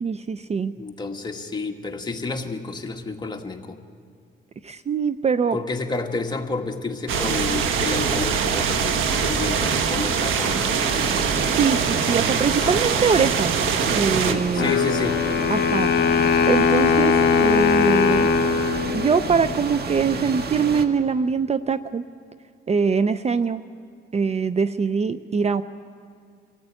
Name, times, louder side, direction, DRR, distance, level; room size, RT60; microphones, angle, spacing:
voice 1, 0.0-0.7 4.6-5.6 11.6-13.5 13.9-14.7 15.5-15.9 16.5-18.3 18.9-22.0 22.7-23.6 24.1-25.6, right 5 dB, 35° right, 13 dB, 0.5 m, -23 dB
voice 2, 0.8-3.8 5.5-11.2 12.6-12.8 14.2-15.2, left 3 dB, 20° left, 2 dB, 1.9 m, -30 dB
sound 1, 7.1-14.3, right 6 dB, 80° right, 1.4 m, -23 dB
sound 2, 10.9-20.9, right 4 dB, 55° right, 1.6 m, -30 dB
Wind instrument woodwind instrument, 14.6-19.6, left 6 dB, 65° left, 1.3 m, -20 dB
24.5 x 15.0 x 9.0 m, 2.1 s
cardioid pair, 90°, 20 cm